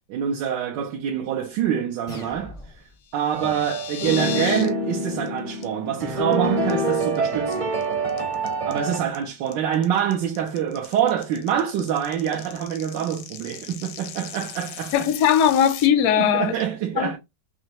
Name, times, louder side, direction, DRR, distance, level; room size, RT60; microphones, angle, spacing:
voice 1, 0.1-2.6 3.1-7.7 8.6-14.9 16.2-17.2, right 9 dB, 80° right, 1.3 m, -26 dB
sound 1, 2.1-3.1, left 2 dB, 45° left, 0.4 m, -41 dB
sound 2, 3.0-4.7 5.0-5.3 5.6-5.7 6.1-6.3 6.7-7.2 7.5-15.9, left 9 dB, 85° left, 1.4 m, -37 dB
sound 3, 3.3-9.0, right 2 dB, 30° right, 0.6 m, -26 dB
voice 2, 14.9-16.5 17.0-17.2, left 9 dB, 70° left, 0.9 m, -19 dB
4.2 x 2.9 x 2.8 m
omnidirectional pair, 1.9 m